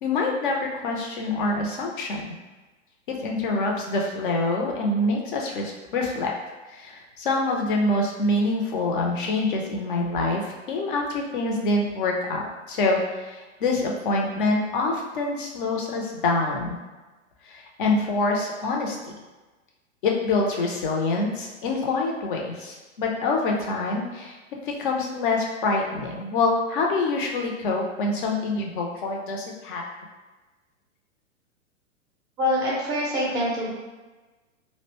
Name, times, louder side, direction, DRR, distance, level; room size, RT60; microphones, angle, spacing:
voice 1, 0.0-2.2 3.1-6.3 6.7-16.8 17.5-19.0 20.0-24.4 24.7-29.8, left 2 dB, 40° left, 0 dB, 0.6 m, -26 dB
voice 2, 32.4-33.7, left 1 dB, 10° right, -5 dB, 0.4 m, -25 dB
2.6 x 2.1 x 3.0 m, 1.2 s
figure-of-eight pair, 110°, 39 cm